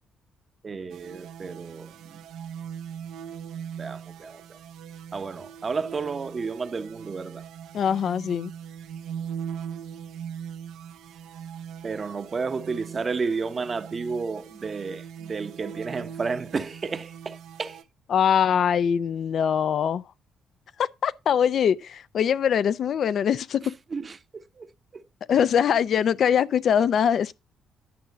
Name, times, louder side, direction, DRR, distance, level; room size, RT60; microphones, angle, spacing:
voice 1, 0.6-2.2 3.8-4.6 5.1-7.4 11.8-17.8 23.6-25.1, right 4 dB, 35° right, 0.8 m, -32 dB
sound 1, 0.9-17.8, right 8 dB, 85° right, 0.7 m, -40 dB
voice 2, 7.7-8.5 18.1-20.0 20.8-23.6 25.3-27.3, left 8 dB, 60° left, 0.5 m, -22 dB
10.5 x 6.1 x 4.0 m
cardioid pair, 90°, 0 cm